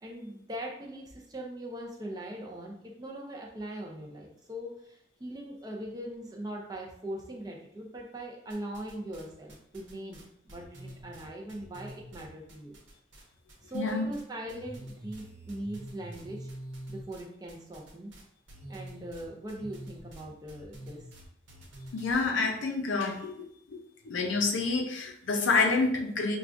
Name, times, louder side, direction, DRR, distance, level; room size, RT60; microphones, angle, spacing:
voice 1, 0.0-12.8 13.6-16.5 16.9-18.1 18.7-21.0, right 1 dB, 20° right, 0 dB, 0.5 m, -41 dB
sound 1, 8.5-9.2 9.5-13.2 13.5-14.2 14.5-22.3, right 1 dB, 85° right, 0.9 m, -46 dB
voice 2, 13.7-14.1 21.9-23.3 23.7-23.8 24.0-26.4, left 4 dB, 85° left, 3 dB, 0.5 m, -28 dB
4.7 x 2.3 x 2.5 m, 0.71 s
head